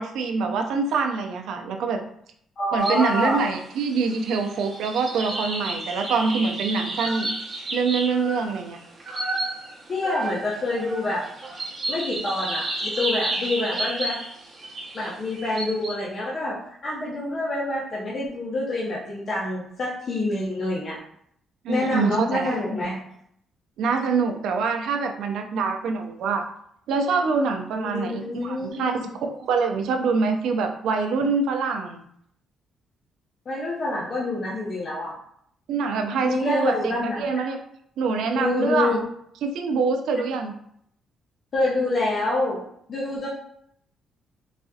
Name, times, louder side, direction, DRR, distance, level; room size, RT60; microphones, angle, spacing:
voice 1, 0.0-2.0 2.7-7.3 7.7-8.8 21.6-22.5 23.8-26.4 26.9-28.9 29.4-32.1 35.7-37.6 38.0-39.0 39.4-40.5, right 4 dB, 85° right, 5 dB, 0.4 m, -25 dB
voice 2, 2.6-3.4 9.9-11.2 11.9-14.2 14.9-21.0 21.7-23.0 27.8-29.1 33.5-35.1 36.2-37.4 38.3-39.0 41.5-43.3, left 2 dB, 45° left, -6 dB, 0.9 m, -27 dB
sound 1, 2.8-3.2 3.5-15.9, right 2 dB, 35° right, 0.8 m, -31 dB
4.0 x 2.7 x 2.4 m, 0.69 s
cardioid pair, 110°, 0 cm